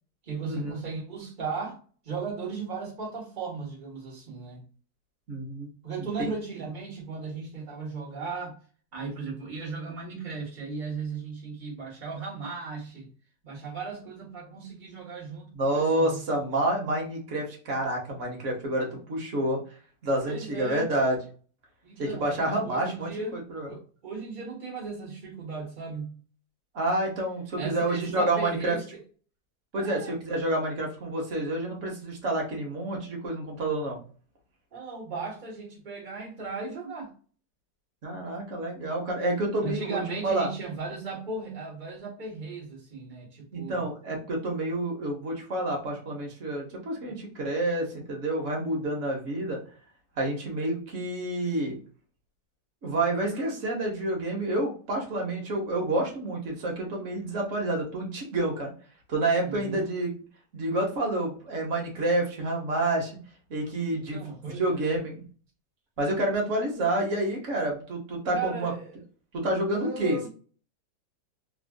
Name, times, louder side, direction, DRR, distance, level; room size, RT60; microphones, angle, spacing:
voice 1, 0.2-1.8 2.0-4.7 5.8-8.6 8.9-13.1 13.4-16.6 20.3-20.9 21.8-26.2 27.5-29.0 29.7-30.1 34.7-37.1 39.6-43.9 59.4-59.8 63.9-65.0 68.3-69.0 69.6-70.3, right 4 dB, 30° right, 1.2 m, -36 dB
voice 2, 5.3-5.7 6.2-6.3 15.5-19.6 20.0-21.2 22.0-23.7 26.7-28.8 29.7-34.0 38.0-40.5 43.5-49.6 50.2-51.8 52.8-58.7 59.1-60.1 60.5-63.1 63.5-65.2 66.0-68.7 69.3-70.3, right 1 dB, 50° right, 1.1 m, -29 dB
3.4 x 2.5 x 2.2 m
omnidirectional pair, 2.1 m